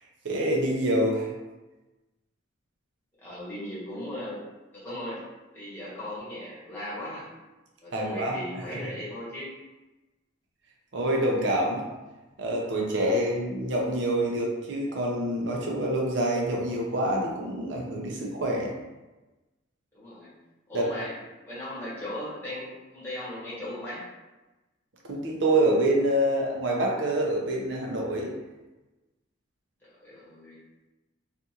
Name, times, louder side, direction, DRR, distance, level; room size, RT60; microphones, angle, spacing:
voice 1, 0.2-1.3 7.9-8.4 10.9-11.8 12.4-18.7 20.7-20.9 25.1-28.3, right 1 dB, 65° right, -1 dB, 0.6 m, -26 dB
voice 2, 3.2-4.4 4.7-5.2 5.5-7.3 7.8-9.5 19.9-20.3 20.7-21.1 21.5-24.1 29.8-30.6, left 1 dB, 10° left, -9 dB, 1.0 m, -37 dB
2.5 x 2.4 x 2.8 m, 1.1 s
head